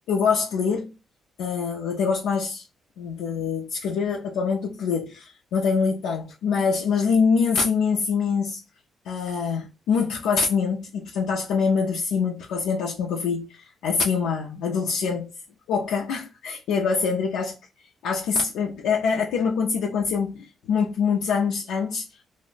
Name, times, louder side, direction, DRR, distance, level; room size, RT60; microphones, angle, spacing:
voice 1, 0.1-0.9 1.4-2.7 3.0-8.6 9.1-15.3 15.7-17.6 18.0-22.1, left 5 dB, 90° left, 0.4 m, -24 dB
2.5 x 2.0 x 3.8 m
cardioid pair, 90°, 0 cm